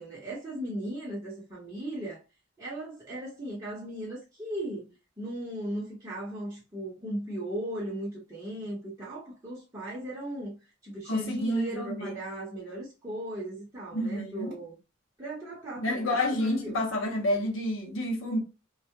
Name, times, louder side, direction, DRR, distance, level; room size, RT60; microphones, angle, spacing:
voice 1, 0.0-2.2 2.6-10.6 10.8-14.8 15.2-16.8, right 1 dB, 15° right, 0.8 m, -37 dB
voice 2, 11.1-12.1 13.9-14.5 15.8-18.4, left 1 dB, 75° left, 0.7 m, -29 dB
2.2 x 2.1 x 2.8 m
head